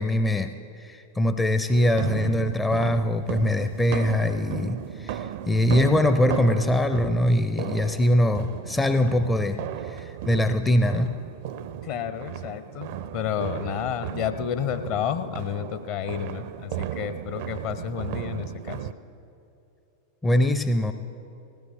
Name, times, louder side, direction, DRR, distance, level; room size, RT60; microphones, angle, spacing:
voice 1, 0.0-11.2 20.2-20.9, left 1 dB, 10° left, 9 dB, 0.5 m, -23 dB
sound 1, 1.7-18.9, right 10 dB, 50° right, 0.5 m, -35 dB
voice 2, 11.8-18.8, left 9 dB, 45° left, 10 dB, 0.8 m, -31 dB
20.0 x 15.5 x 3.6 m, 2.8 s
figure-of-eight pair, 90°, 0 cm